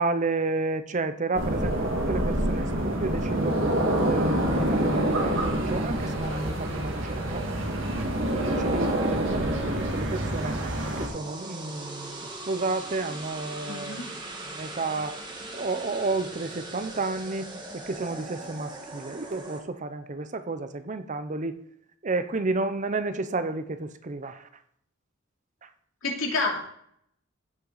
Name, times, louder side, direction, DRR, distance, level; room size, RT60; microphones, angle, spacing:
voice 1, 0.0-3.6 4.0-7.4 8.3-10.6 11.0-15.2 15.5-21.6 22.0-24.5, right 3 dB, 40° right, 11 dB, 0.7 m, -31 dB
sound 1, 1.3-11.1, right 1 dB, 65° right, 2.0 m, -26 dB
sound 2, 6.0-6.9, left 2 dB, 60° left, 2.4 m, -43 dB
sound 3, 9.6-19.6, right 2 dB, 25° right, 1.5 m, -41 dB
voice 2, 13.7-14.0 26.0-26.6, left 3 dB, 85° left, -1 dB, 2.7 m, -28 dB
15.5 x 5.7 x 4.0 m, 0.69 s
head